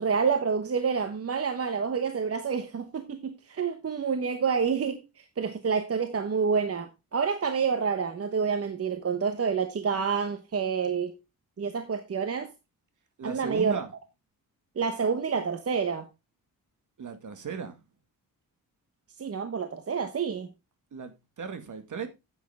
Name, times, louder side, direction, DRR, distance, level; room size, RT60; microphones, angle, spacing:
voice 1, 0.0-11.1 11.6-12.5 13.2-13.8 14.8-16.1 19.2-20.5, right 6 dB, 40° right, 1.1 m, -28 dB
voice 2, 13.2-13.9 17.0-17.8 20.9-22.1, right 6 dB, 55° right, 2.1 m, -36 dB
10.0 x 8.4 x 3.6 m
wide cardioid pair, 120°, 35 cm